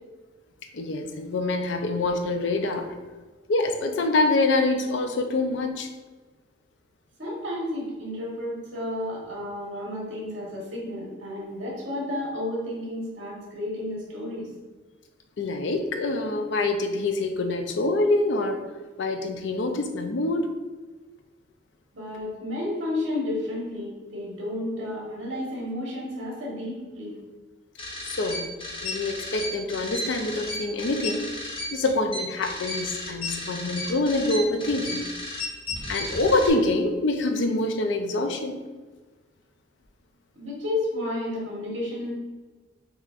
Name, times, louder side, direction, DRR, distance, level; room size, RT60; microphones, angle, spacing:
voice 1, 0.7-3.0 3.5-5.9 15.4-18.6 19.0-20.5 28.0-28.5 28.8-31.4 31.7-35.1 35.9-38.6, left 2 dB, 75° left, 6 dB, 0.4 m, -25 dB
voice 2, 7.2-14.5 21.9-27.1 40.3-42.1, left 1 dB, 70° right, -5 dB, 1.3 m, -32 dB
sound 1, 27.8-36.5, left 2 dB, 30° left, 0.8 m, -34 dB
5.6 x 2.9 x 2.5 m, 1.3 s
head